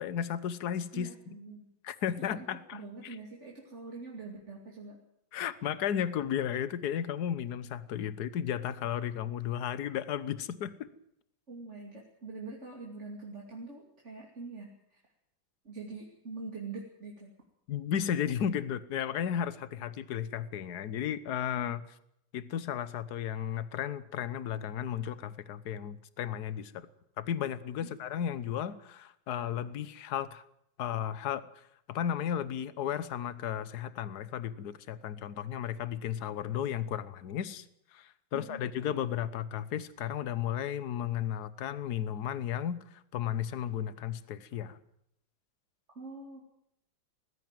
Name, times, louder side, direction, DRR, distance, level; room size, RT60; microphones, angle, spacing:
voice 1, 0.0-1.1 1.8-3.1 5.3-10.9 17.7-21.8 22.3-26.9 27.2-30.4 30.8-31.5 31.9-37.6 37.9-44.8, left 9 dB, 60° left, 15 dB, 1.5 m, -34 dB
voice 2, 0.9-1.7 2.4-5.0 11.5-15.0 15.6-17.3 38.3-38.6 45.9-46.4, right 3 dB, 35° right, -1 dB, 2.9 m, -44 dB
19.5 x 15.5 x 9.1 m, 0.77 s
omnidirectional pair, 2.1 m